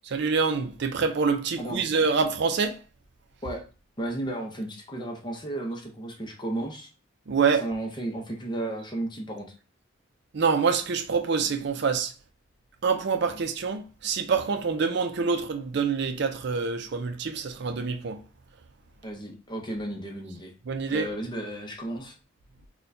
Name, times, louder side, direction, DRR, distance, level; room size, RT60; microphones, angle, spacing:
voice 1, 0.0-2.8 7.3-7.6 10.3-12.1 12.8-18.2 20.7-21.1, right 5 dB, 60° right, 0.4 m, -26 dB
voice 2, 1.6-1.9 3.4-3.6 4.0-6.9 7.6-9.5 19.0-20.5 20.9-22.2, right 1 dB, 25° left, 0.7 m, -34 dB
4.3 x 2.2 x 2.6 m
head